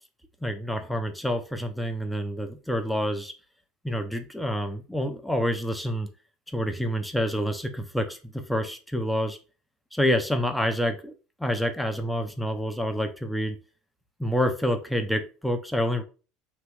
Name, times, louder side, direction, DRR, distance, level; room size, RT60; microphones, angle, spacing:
voice 1, 0.4-3.3 3.8-6.1 6.5-9.4 9.9-11.1 11.4-13.6 14.2-16.0, equal, ahead, 5 dB, 0.7 m, -27 dB
3.1 x 3.0 x 4.6 m, 0.34 s
supercardioid pair, 105°, 0 cm